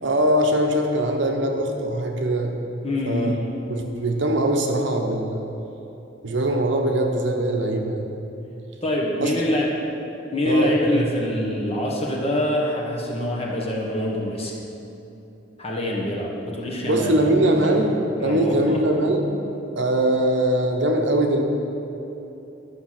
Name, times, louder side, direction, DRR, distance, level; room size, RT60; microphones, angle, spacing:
voice 1, 0.0-2.6 3.0-3.3 3.7-5.5 6.2-8.2 9.2-9.5 10.5-11.0 16.8-17.9 18.2-19.2 19.8-21.4, right 1 dB, 65° right, 2 dB, 1.0 m, -22 dB
voice 2, 2.8-3.5 8.8-9.7 10.3-14.5 15.6-17.8 18.2-18.8, left 1 dB, 30° left, -2 dB, 1.5 m, -25 dB
11.5 x 6.4 x 5.9 m, 3.0 s
head